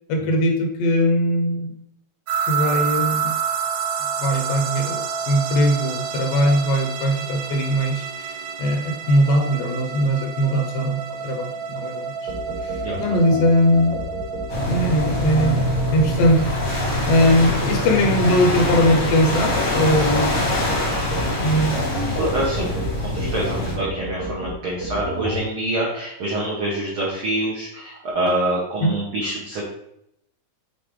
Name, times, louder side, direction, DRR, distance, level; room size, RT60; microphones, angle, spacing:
voice 1, 0.1-1.7 2.5-3.4 4.2-12.3 12.6-14.0 14.7-15.7 15.9-16.5 17.1-20.4 21.4-21.8 28.8-28.9, equal, 75° left, 3 dB, 2.3 m, -20 dB
sound 1, 2.3-16.9, right 7 dB, 90° right, 2.6 m, -29 dB
sound 2, 12.3-25.4, equal, 55° right, 1.7 m, -31 dB
voice 2, 12.8-13.2 22.1-22.7 23.0-29.7, right 1 dB, 70° right, -5 dB, 1.2 m, -26 dB
sound 3, 14.5-23.8, left 1 dB, 45° left, 1.1 m, -24 dB
7.5 x 4.0 x 3.2 m, 0.77 s
omnidirectional pair, 4.1 m